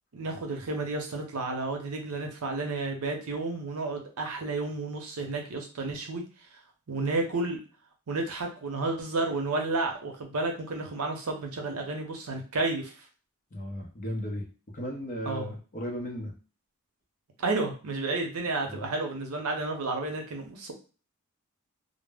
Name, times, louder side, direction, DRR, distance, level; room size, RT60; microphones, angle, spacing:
voice 1, 0.1-6.2 6.9-7.6 8.1-12.9 15.2-15.5 17.4-20.7, right 3 dB, 80° right, 3 dB, 0.6 m, -31 dB
voice 2, 13.5-14.5 14.7-16.3 18.6-18.9, equal, 35° left, 0 dB, 0.6 m, -35 dB
2.0 x 2.0 x 3.4 m, 0.35 s
head